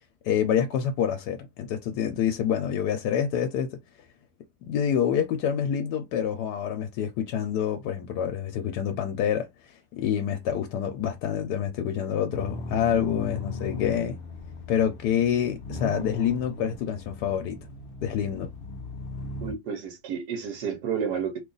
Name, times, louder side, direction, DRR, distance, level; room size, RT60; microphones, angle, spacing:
voice 1, 0.2-3.8 4.6-9.5 9.9-14.2 14.7-17.6 18.0-18.5, left 9 dB, 90° left, 1.2 m, -27 dB
sound 1, 12.3-19.5, left 3 dB, 55° left, 0.6 m, -38 dB
voice 2, 19.4-21.4, right 7 dB, 85° right, 1.3 m, -31 dB
3.0 x 2.3 x 3.8 m
omnidirectional pair, 1.7 m